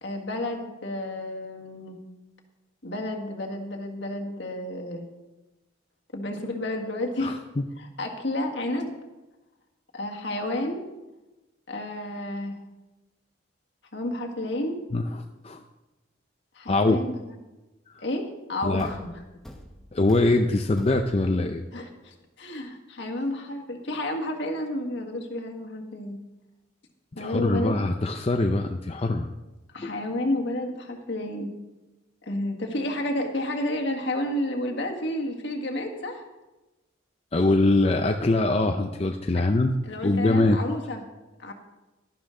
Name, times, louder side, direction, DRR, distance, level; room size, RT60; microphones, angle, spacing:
voice 1, 0.0-2.0 2.8-5.1 6.1-7.4 7.8-8.9 9.9-10.8 11.7-12.6 13.9-14.8 16.5-17.1 18.0-19.2 21.7-26.2 27.1-27.8 29.7-31.5 32.2-36.2 39.3-39.4 39.8-41.0 41.4-41.5, left 1 dB, 65° left, 1 dB, 1.7 m, -31 dB
voice 2, 7.2-7.6 14.9-15.6 16.7-17.0 17.9-18.0 18.6-18.9 19.9-21.6 27.2-29.3 29.8-29.9 37.3-39.7 40.0-40.6, left 2 dB, 30° left, 5 dB, 0.5 m, -23 dB
Thump thud, 18.8-21.4, equal, ahead, 1.0 m, -46 dB
12.0 x 11.5 x 3.8 m, 1.1 s
head